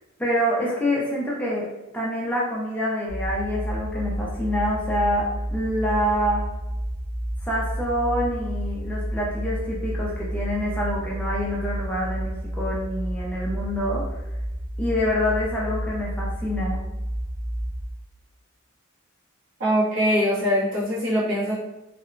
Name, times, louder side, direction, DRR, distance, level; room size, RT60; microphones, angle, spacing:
voice 1, 0.2-1.7 1.9-6.5 7.4-14.0 14.8-16.8, equal, 5° left, -5 dB, 0.4 m, -26 dB
sound 1, 3.1-17.9, equal, 30° right, 0.7 m, -30 dB
voice 2, 19.6-21.5, equal, 65° right, -8 dB, 1.2 m, -22 dB
2.8 x 2.1 x 2.5 m, 0.99 s
head